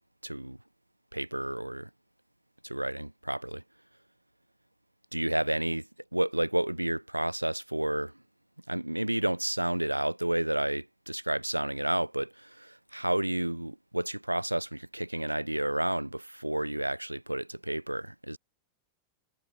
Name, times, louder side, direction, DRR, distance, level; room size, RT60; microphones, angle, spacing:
voice 1, 0.2-0.6 1.1-1.9 2.6-3.6 5.1-5.8 6.1-8.1 8.7-18.4, right 1 dB, 85° right, 1.0 m, -31 dB
figure-of-eight pair, 90°, 0 cm